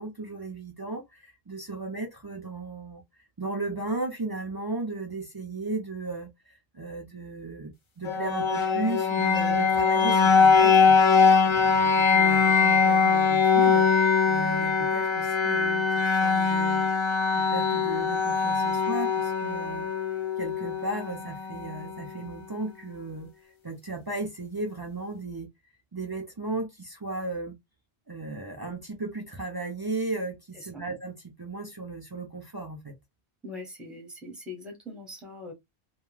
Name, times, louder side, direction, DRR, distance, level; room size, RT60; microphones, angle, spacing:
voice 1, 0.0-3.0 3.4-13.9 14.3-15.9 16.2-16.9 17.3-19.9 20.4-23.3 23.6-25.5 25.9-27.5 28.1-32.9, right 2 dB, 40° right, 0.3 m, -35 dB
sound 1, 8.0-22.0, left 5 dB, 40° left, 0.4 m, -22 dB
voice 2, 33.4-35.5, left 2 dB, ahead, 0.7 m, -42 dB
2.2 x 2.2 x 3.1 m
omnidirectional pair, 1.1 m